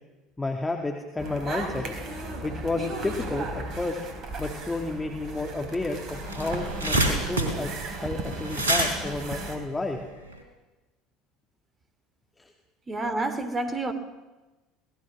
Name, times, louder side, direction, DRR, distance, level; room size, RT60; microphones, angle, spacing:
voice 1, 0.4-1.8 2.4-3.5 3.8-4.0 4.4-7.7 8.0-10.0 12.4-12.5, left 2 dB, 15° left, 2.2 m, -31 dB
sound 1, 1.2-9.6, right 2 dB, 40° right, 4.4 m, -35 dB
sound 2, 5.8-5.9 6.1-10.4, right 1 dB, 75° right, 3.9 m, -28 dB
voice 2, 12.9-13.9, right 2 dB, 25° right, 2.9 m, -29 dB
26.0 x 18.5 x 6.2 m
figure-of-eight pair, 65°, 0 cm